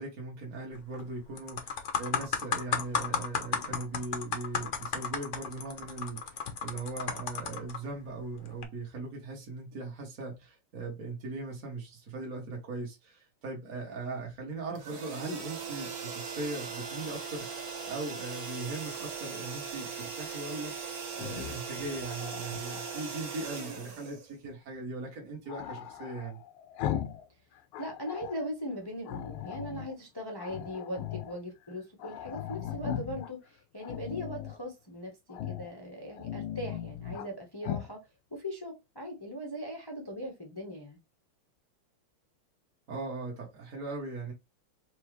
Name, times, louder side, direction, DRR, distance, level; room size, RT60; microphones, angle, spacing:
voice 1, 0.0-17.5 17.8-20.7 21.2-26.4 42.9-44.3, right 3 dB, 50° right, 1.4 m, -39 dB
sound 1, 0.7-1.0 1.4-7.8 8.5-8.6, left 6 dB, 65° left, 0.7 m, -33 dB
sound 2, 14.8-24.7, right 6 dB, 75° right, 2.0 m, -39 dB
Growling, 21.1-23.1 25.5-27.3 27.6-28.5 29.0-29.9 30.4-31.4 31.7-31.8 32.0-33.3 33.8-34.6 35.3-35.7 36.1-37.3 37.6-37.9, left 11 dB, 85° left, 1.4 m, -38 dB
voice 2, 27.8-38.0 38.3-41.0, equal, 40° left, 0.3 m, -39 dB
4.6 x 2.8 x 3.1 m
omnidirectional pair, 2.3 m